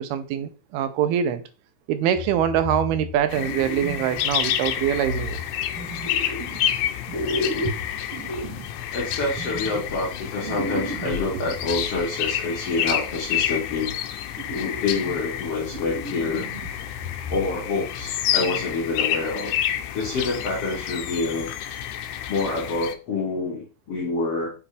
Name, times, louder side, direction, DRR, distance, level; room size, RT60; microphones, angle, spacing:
voice 1, 0.0-1.4 1.9-5.4, right 9 dB, 80° right, 2.6 m, -24 dB
sound 1, 2.1-4.4 4.8-6.8 7.1-12.1 13.0-14.0 14.4-15.4 15.7-17.7 18.0-18.2 18.7-18.8, left 1 dB, 40° right, 1.1 m, -34 dB
sound 2, 3.3-23.0, left 11 dB, 80° left, 2.3 m, -29 dB
voice 2, 8.9-13.9 14.5-16.5 17.3-19.5 19.9-21.5 22.3-24.5, left 3 dB, 50° left, 2.0 m, -27 dB
7.2 x 5.4 x 3.4 m
omnidirectional pair, 4.5 m